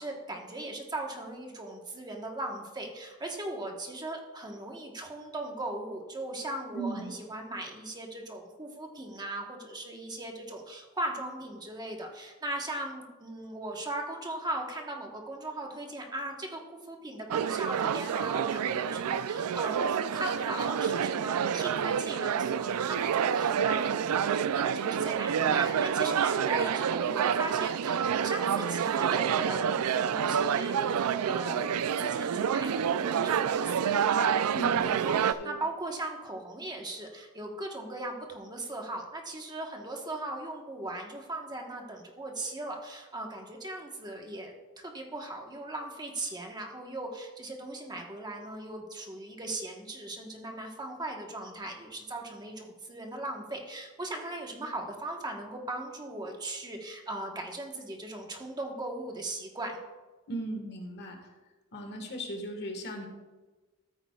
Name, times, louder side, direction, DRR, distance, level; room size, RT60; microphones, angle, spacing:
voice 1, 0.0-59.8, right 2 dB, 20° right, 1 dB, 1.1 m, -38 dB
voice 2, 6.7-7.1 34.5-35.0 35.4-35.6 60.3-61.2 61.7-63.1, right 2 dB, 50° left, 4 dB, 1.5 m, -37 dB
sound 1, 17.3-35.3, right 8 dB, 75° right, 0.4 m, -28 dB
13.5 x 9.0 x 2.3 m, 1.2 s
head